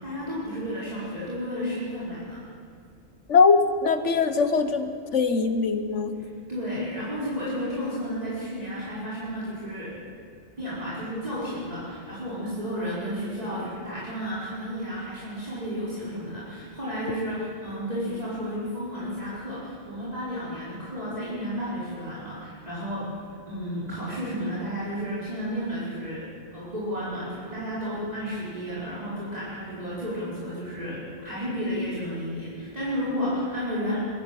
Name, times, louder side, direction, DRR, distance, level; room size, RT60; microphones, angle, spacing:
voice 1, 0.0-2.4 6.2-9.9 10.6-23.1 23.5-26.2 26.5-34.0, equal, 35° right, -10 dB, 4.8 m, -32 dB
voice 2, 3.3-6.1, left 4 dB, 85° left, 9 dB, 1.6 m, -21 dB
22.0 x 14.0 x 8.6 m, 2.3 s
omnidirectional pair, 1.2 m